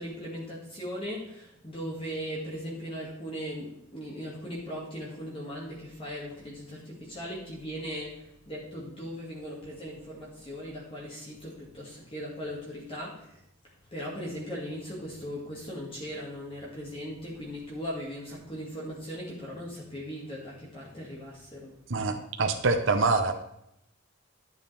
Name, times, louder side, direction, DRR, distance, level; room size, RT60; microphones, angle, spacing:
voice 1, 0.0-13.4 13.9-21.7, equal, 30° left, -4 dB, 2.1 m, -38 dB
voice 2, 21.9-23.3, right 3 dB, 70° right, 5 dB, 0.8 m, -25 dB
11.5 x 7.1 x 3.4 m, 0.79 s
head